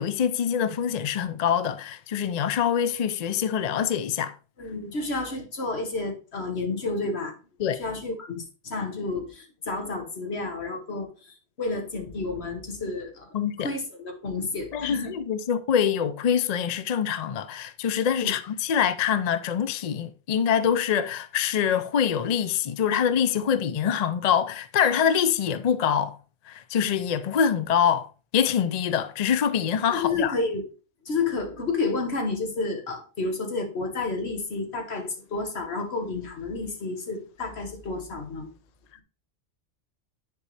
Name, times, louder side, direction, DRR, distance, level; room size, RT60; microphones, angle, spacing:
voice 1, 0.0-4.3 7.6-7.8 13.3-13.7 14.7-26.2 26.5-28.1 28.3-30.3, left 8 dB, 55° left, 0.5 m, -25 dB
voice 2, 4.6-7.3 7.7-15.2 18.2-18.3 29.9-30.7 31.0-38.5, left 3 dB, 70° left, 1.7 m, -31 dB
9.9 x 4.6 x 3.2 m
omnidirectional pair, 1.1 m